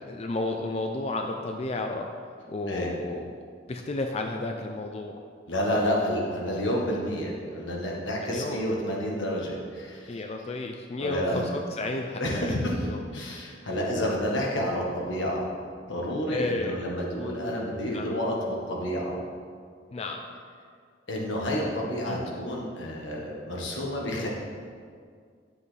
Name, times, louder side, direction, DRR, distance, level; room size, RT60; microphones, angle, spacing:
voice 1, 0.0-2.1 2.5-3.3 3.7-5.2 8.2-8.7 10.1-13.0 16.2-16.8 17.9-18.2 19.9-20.2 22.1-22.3 24.2-24.3, left 2 dB, 35° left, 3 dB, 0.4 m, -32 dB
voice 2, 5.5-10.1 11.0-11.4 12.2-12.9 13.1-15.5 15.9-19.2 21.1-24.3, equal, 80° left, -2 dB, 1.5 m, -29 dB
9.7 x 7.0 x 3.4 m, 2.1 s
head